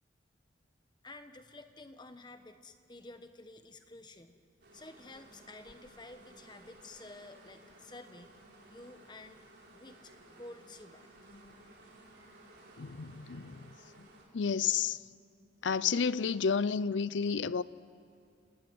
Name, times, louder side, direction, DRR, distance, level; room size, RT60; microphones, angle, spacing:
voice 1, 1.0-4.4 4.7-8.3 8.7-9.4 9.7-10.1 10.4-11.1, left 2 dB, 25° left, 1.2 m, -51 dB
sound 1, 4.6-14.3, right 1 dB, 60° right, 4.7 m, -57 dB
voice 2, 12.8-13.7 14.3-15.0 15.6-17.6, left 6 dB, 90° left, 0.6 m, -31 dB
29.0 x 18.0 x 9.5 m
head